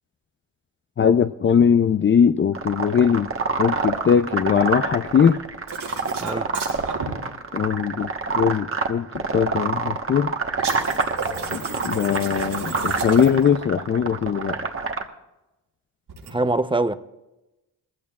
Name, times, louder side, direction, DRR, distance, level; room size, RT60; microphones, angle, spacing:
voice 1, 1.0-3.3 3.6-5.4 7.5-8.1 8.3-9.1 9.3-10.3 11.5-14.6, left 7 dB, 30° left, 0.4 m, -20 dB
sound 1, 2.5-15.0, right 4 dB, 30° right, 1.3 m, -27 dB
sound 2, 5.7-7.1 10.6-13.5 16.1-16.3, right 5 dB, 75° right, 4.9 m, -33 dB
voice 2, 16.3-16.9, right 2 dB, 10° right, 0.7 m, -23 dB
19.5 x 15.5 x 2.4 m
cardioid pair, 65°, 40 cm